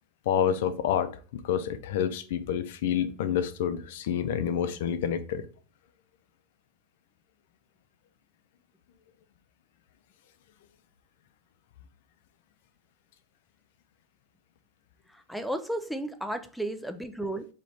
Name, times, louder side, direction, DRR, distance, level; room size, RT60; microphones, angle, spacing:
voice 1, 0.3-5.5, left 9 dB, 70° left, 0.5 m, -28 dB
voice 2, 15.1-17.5, right 1 dB, ahead, 0.3 m, -33 dB
4.2 x 3.1 x 3.2 m
supercardioid pair, 150°, 0 cm